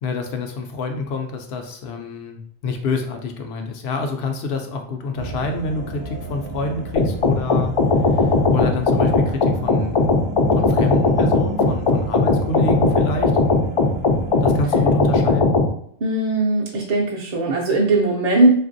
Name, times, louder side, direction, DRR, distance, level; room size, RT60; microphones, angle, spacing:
voice 1, 0.0-7.7 8.5-10.1 10.5-13.3 14.4-15.5, left 2 dB, 75° left, 4 dB, 0.8 m, -27 dB
sound 1, 5.2-14.9, right 2 dB, 75° right, 0.8 m, -32 dB
sound 2, 7.0-15.7, left 3 dB, 55° left, 0.4 m, -18 dB
voice 2, 16.0-18.5, right 2 dB, 50° right, -3 dB, 0.5 m, -19 dB
3.2 x 2.5 x 2.5 m, 0.63 s
omnidirectional pair, 1.1 m